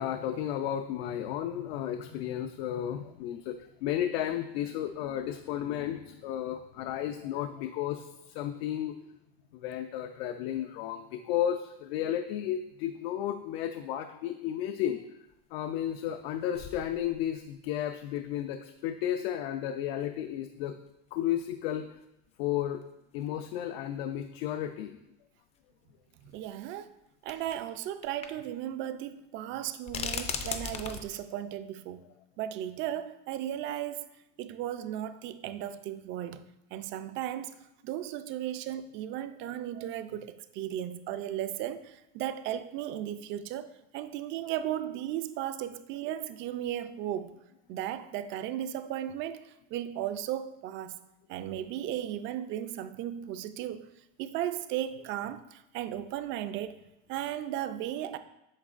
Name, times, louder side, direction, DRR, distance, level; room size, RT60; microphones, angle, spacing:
voice 1, 0.0-9.0 9.5-15.0 15.5-20.8 21.1-22.0 22.4-22.8 23.1-25.0, left 11 dB, 80° left, 7 dB, 0.5 m, -33 dB
sound 1, 15.3-15.4 16.2-16.3 16.5-17.5 18.2-18.3 20.0-20.1 21.4-21.5 21.7-21.8 22.8-22.9 23.2-23.3 24.7-24.8 26.3-26.4 27.3-27.6 28.0-28.3 28.6-28.7 29.9-31.0, left 6 dB, 20° left, 0.4 m, -37 dB
voice 2, 26.3-26.9 27.2-32.1 32.4-34.1 34.4-36.4 36.7-37.6 37.8-47.4 47.7-51.0 51.3-53.9 54.2-56.8 57.1-58.2, right 11 dB, 40° right, 11 dB, 0.4 m, -35 dB
8.6 x 6.2 x 2.4 m, 0.88 s
supercardioid pair, 150°, 30 cm